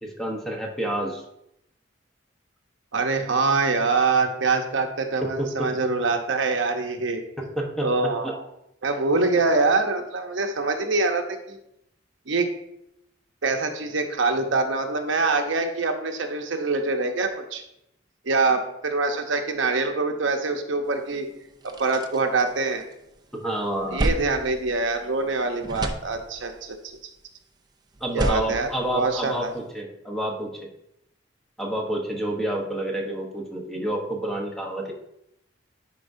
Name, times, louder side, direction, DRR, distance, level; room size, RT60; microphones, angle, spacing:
voice 1, 0.0-1.2 5.2-5.7 7.4-7.9 8.2-8.3 23.3-24.1 28.0-30.7 31.6-34.9, right 1 dB, ahead, -1 dB, 1.0 m, -29 dB
voice 2, 2.9-7.2 7.8-8.5 8.8-11.6 12.3-12.5 13.4-17.6 18.2-21.3 21.6-22.8 23.9-27.0 28.1-29.5, right 3 dB, 85° right, 4 dB, 0.8 m, -24 dB
sound 1, 21.0-21.1 21.4-23.1 23.5-25.3 25.6-26.7 27.9-29.6, right 1 dB, 20° right, 0.5 m, -31 dB
10.0 x 4.7 x 2.7 m, 0.80 s
head